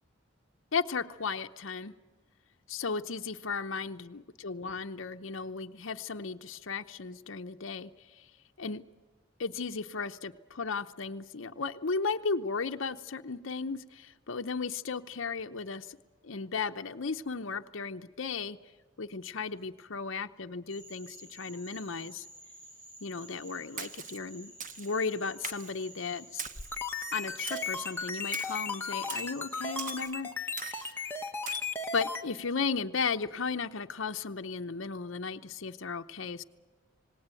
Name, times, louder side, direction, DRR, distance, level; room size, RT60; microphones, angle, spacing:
voice 1, 0.7-1.9 2.7-7.9 8.2-8.3 8.6-8.8 9.4-16.0 16.2-18.6 19.0-22.3 23.0-24.5 24.8-26.5 27.1-31.1 31.9-36.4, left 5 dB, 70° left, 6 dB, 0.8 m, -35 dB
Cricket / Frog, 20.7-30.0, right 1 dB, 65° right, 7.9 m, -52 dB
Splash splatter, 23.8-24.2 24.6-24.9 25.4-25.8 26.4-26.8 27.5-27.8 28.3-28.6 29.1-29.3 29.8-30.1 30.6-30.9 31.5-31.7, right 6 dB, 40° right, 0.9 m, -41 dB
sound 1, 26.5-32.2, left 4 dB, 10° left, 1.2 m, -35 dB
27.0 x 18.5 x 9.0 m, 1.3 s
head